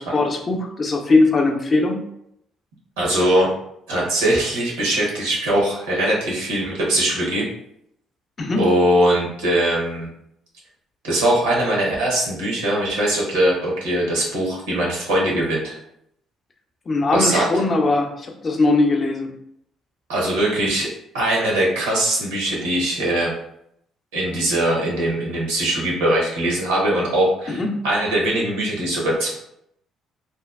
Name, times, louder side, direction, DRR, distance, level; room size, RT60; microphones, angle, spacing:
voice 1, 0.0-2.0 8.4-8.7 16.9-19.3 27.5-27.8, left 2 dB, 40° left, 3 dB, 0.5 m, -20 dB
voice 2, 3.0-3.5 3.9-7.5 8.6-10.1 11.0-15.8 17.1-17.5 20.1-20.9 21.1-23.3 24.1-29.3, right 1 dB, 85° right, -3 dB, 0.8 m, -21 dB
2.7 x 2.2 x 2.3 m, 0.74 s
hypercardioid pair, 50°, 0 cm